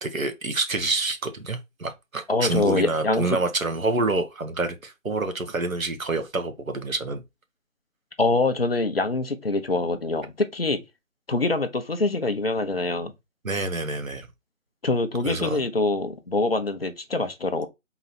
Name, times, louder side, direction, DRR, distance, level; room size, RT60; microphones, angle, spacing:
voice 1, 0.0-7.2 13.4-14.3 15.2-15.6, right 3 dB, 80° right, 1.2 m, -27 dB
voice 2, 2.3-3.4 8.2-10.8 11.3-13.1 14.8-17.7, left 2 dB, 45° left, 0.7 m, -24 dB
3.9 x 3.0 x 4.1 m
figure-of-eight pair, 165°, 41 cm